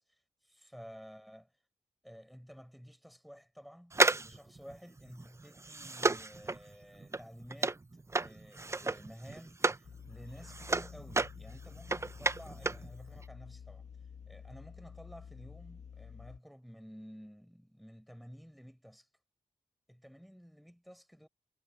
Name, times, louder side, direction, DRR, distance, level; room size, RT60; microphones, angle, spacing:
voice 1, 0.0-1.6 2.0-7.8 8.2-19.1 19.9-21.3, equal, ahead, 5.4 m, -53 dB
sound 1, 3.9-9.9 10.2-12.9 13.2-13.3, right 3 dB, 25° right, 0.6 m, -32 dB
sound 2, 9.8-16.4, left 7 dB, 80° left, 1.9 m, -50 dB
cardioid pair, 55°, 12 cm